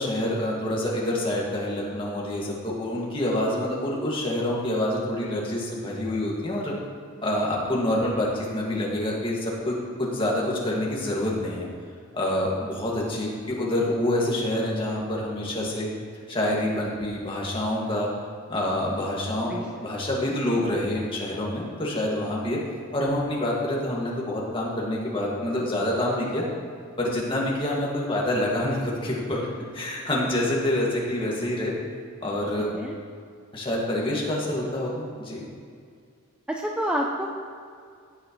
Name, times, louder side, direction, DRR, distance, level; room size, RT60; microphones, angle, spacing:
voice 1, 0.0-6.7 7.2-11.7 12.1-15.9 16.3-18.1 18.5-22.6 22.9-26.4 27.0-29.5 29.7-31.7 32.2-32.7 33.5-35.5, left 1 dB, 25° left, -4 dB, 2.0 m, -27 dB
voice 2, 36.5-37.3, equal, 5° right, 0 dB, 0.5 m, -28 dB
17.0 x 6.4 x 3.2 m, 2.2 s
head